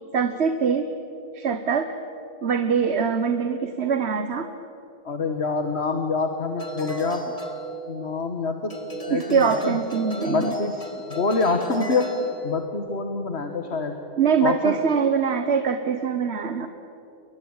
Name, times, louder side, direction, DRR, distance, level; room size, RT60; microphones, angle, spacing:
voice 1, 0.1-0.9 1.3-2.0 2.4-4.5 9.1-10.5 14.2-16.7, right 6 dB, 90° right, 9 dB, 1.4 m, -23 dB
voice 2, 5.0-7.3 7.9-8.7 9.1-9.8 10.3-12.1 12.4-13.9 14.4-14.8, left 4 dB, 85° left, 5 dB, 1.9 m, -26 dB
sound 1, 6.6-8.3 8.7-12.7, right 1 dB, 35° left, 2.5 m, -35 dB
29.5 x 22.5 x 8.9 m, 2.9 s
omnidirectional pair, 1.1 m